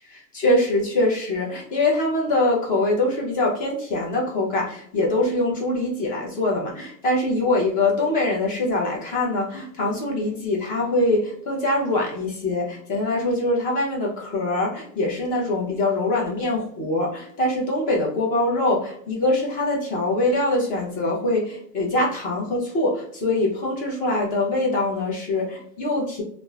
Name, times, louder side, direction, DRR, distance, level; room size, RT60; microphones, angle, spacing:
voice 1, 0.1-26.2, left 2 dB, 20° left, -3 dB, 0.5 m, -23 dB
2.9 x 2.0 x 2.3 m, 0.63 s
supercardioid pair, 140°, 48 cm